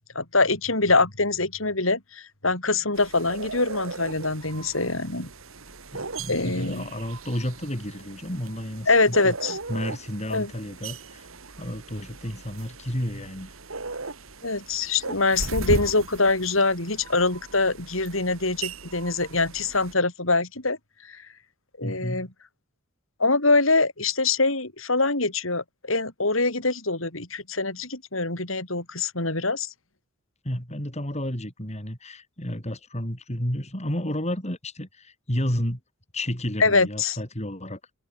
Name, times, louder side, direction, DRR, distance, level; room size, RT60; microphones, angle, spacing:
voice 1, 0.1-5.3 6.3-6.9 8.9-9.6 10.3-10.5 14.4-20.8 21.1-21.2 21.8-22.3 23.2-29.7 36.6-37.2, left 3 dB, 75° left, 6.7 m, -24 dB
sound 1, 2.9-19.9, right 3 dB, 85° right, 3.2 m, -38 dB
voice 2, 5.9-11.3 11.6-13.5 21.8-22.3 30.4-35.8 36.1-37.8, left 1 dB, 35° left, 6.7 m, -31 dB
head